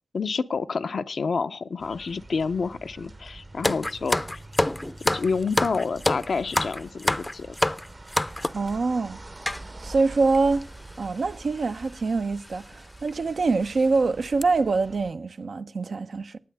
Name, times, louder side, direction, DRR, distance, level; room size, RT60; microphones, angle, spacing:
voice 1, 0.1-4.2 5.0-7.6, left 4 dB, 80° left, 0.6 m, -28 dB
sound 1, 1.8-15.1, right 2 dB, 40° right, 0.8 m, -45 dB
sound 2, 3.6-8.7 9.5-9.6 10.3-10.4 10.6-10.8 11.8-12.0 12.4-12.6 13.1-13.2 13.6-13.8 14.2-14.4, left 1 dB, 20° left, 0.5 m, -26 dB
voice 2, 8.5-9.2 9.8-10.6 11.0-16.4, right 3 dB, 80° right, 0.6 m, -25 dB
18.5 x 9.2 x 3.4 m
cardioid pair, 50°, 0 cm